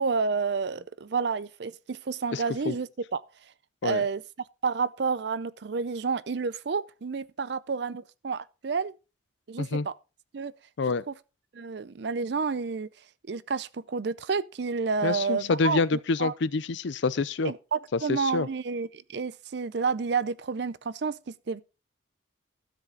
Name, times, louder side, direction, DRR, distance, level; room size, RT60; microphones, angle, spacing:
voice 1, 0.0-3.2 3.8-4.2 4.6-9.0 9.5-9.9 10.3-10.5 11.1-11.2 11.5-12.9 13.3-16.3 17.4-21.6, right 5 dB, 60° right, 0.5 m, -30 dB
voice 2, 2.3-2.7 3.8-4.0 9.6-9.9 10.8-11.0 15.0-17.5 17.9-18.5, left 4 dB, 65° left, 0.5 m, -27 dB
12.5 x 7.4 x 3.8 m
head